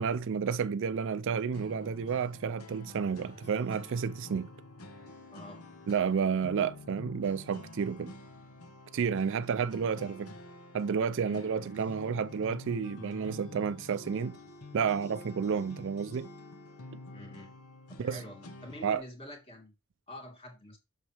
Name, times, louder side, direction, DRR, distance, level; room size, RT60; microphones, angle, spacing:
voice 1, 0.0-4.5 5.9-8.1 8.9-10.3 10.7-14.4 14.7-16.3 18.0-18.2 18.8-19.0, right 6 dB, 60° right, 0.4 m, -31 dB
sound 1, 1.5-19.0, left 2 dB, 90° left, 1.4 m, -48 dB
voice 2, 5.3-5.6 11.3-11.4 17.1-17.6 17.9-19.7 20.1-20.8, left 1 dB, 25° left, 2.5 m, -47 dB
7.7 x 6.4 x 3.3 m
head